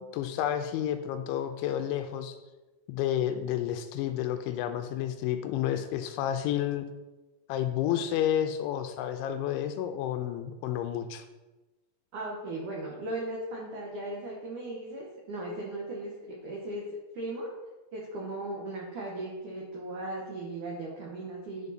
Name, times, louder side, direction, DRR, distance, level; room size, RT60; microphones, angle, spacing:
voice 1, 0.1-2.4 2.9-6.9 7.5-11.2, left 10 dB, 85° left, 8 dB, 2.8 m, -30 dB
voice 2, 12.1-16.8 17.1-17.5 17.9-21.7, right 2 dB, 90° right, -2 dB, 1.7 m, -37 dB
10.5 x 5.2 x 4.1 m, 1.1 s
omnidirectional pair, 5.5 m